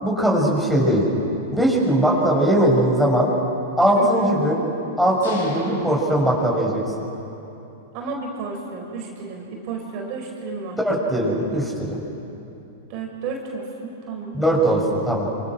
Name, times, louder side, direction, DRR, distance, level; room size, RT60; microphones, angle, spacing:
voice 1, 0.0-1.0 1.5-3.3 3.8-4.6 5.0-6.8 10.8-12.0 14.3-15.3, right 1 dB, 5° left, -2 dB, 6.6 m, -20 dB
voice 2, 3.9-4.3 7.9-10.8 12.9-14.4, right 4 dB, 45° right, 1 dB, 5.2 m, -32 dB
sound 1, 5.2-7.1, left 2 dB, 70° left, 7.7 m, -36 dB
27.5 x 27.0 x 6.3 m, 2.9 s
figure-of-eight pair, 100°, 0 cm